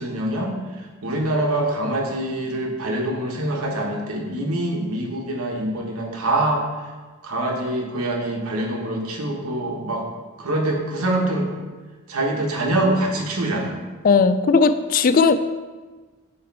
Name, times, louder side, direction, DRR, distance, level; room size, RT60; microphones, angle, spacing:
voice 1, 0.0-6.7 7.2-10.0 10.4-11.5 12.1-13.8, right 1 dB, 85° right, 0 dB, 1.2 m, -24 dB
voice 2, 14.0-15.4, left 4 dB, 40° left, 11 dB, 0.3 m, -17 dB
8.7 x 3.2 x 4.6 m, 1.3 s
head